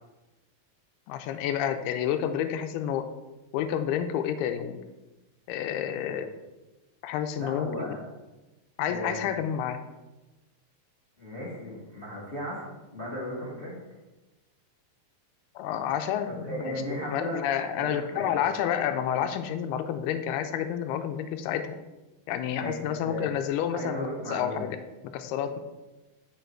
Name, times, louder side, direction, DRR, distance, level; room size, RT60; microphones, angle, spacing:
voice 1, 1.1-3.1 3.5-4.8 5.5-6.3 7.0-8.0 8.8-9.8 15.6-21.8 22.3-24.8 25.1-25.6, left 9 dB, 85° left, 8 dB, 2.6 m, -29 dB
voice 2, 7.4-8.0 8.9-9.3 11.2-13.8 16.2-17.4 17.8-18.3 22.6-23.3 23.7-24.6, equal, 25° left, -7 dB, 1.2 m, -36 dB
9.3 x 5.9 x 4.5 m, 1.1 s
omnidirectional pair, 4.6 m